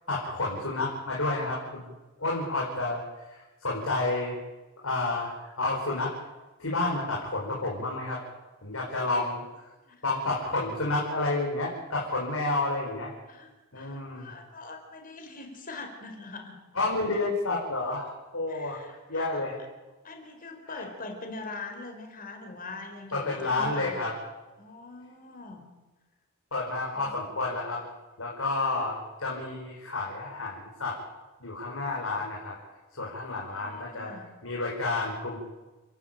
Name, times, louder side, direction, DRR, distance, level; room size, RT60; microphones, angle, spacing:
voice 1, 0.1-1.9 2.2-3.0 3.3-4.3 4.8-6.1 6.6-8.2 8.6-9.7 10.0-13.1 13.7-14.3 16.7-18.8 19.1-19.6 20.7-20.9 23.1-24.1 26.5-27.8 28.2-31.0 31.4-32.6 32.9-34.1 34.4-35.4, left 2 dB, 85° left, -3 dB, 4.9 m, -30 dB
voice 2, 13.3-16.6 18.5-19.5 20.0-24.0 24.6-25.6 26.9-27.1 33.3-34.3, left 3 dB, 45° left, 4 dB, 4.4 m, -42 dB
30.0 x 11.5 x 9.1 m, 1.2 s
head